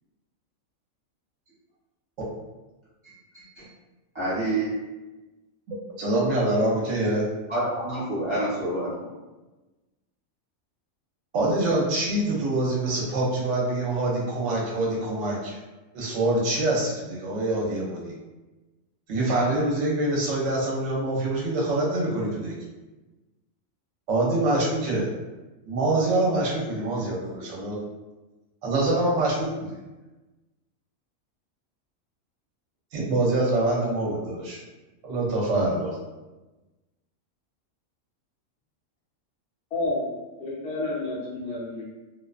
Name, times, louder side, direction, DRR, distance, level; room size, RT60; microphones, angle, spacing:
voice 1, 3.3-3.6 4.1-4.8 7.5-8.9, right 1 dB, 25° right, -10 dB, 0.7 m, -27 dB
voice 2, 5.7-7.3 11.3-15.6 15.9-18.1 19.1-22.6 24.1-25.1 25.6-27.8 28.6-29.8 32.9-34.6 35.0-36.0, right 2 dB, 70° right, -4 dB, 0.9 m, -25 dB
voice 3, 39.7-40.0 40.4-41.8, left 2 dB, 60° left, -5 dB, 0.9 m, -29 dB
2.4 x 2.1 x 2.3 m, 1.1 s
omnidirectional pair, 1.4 m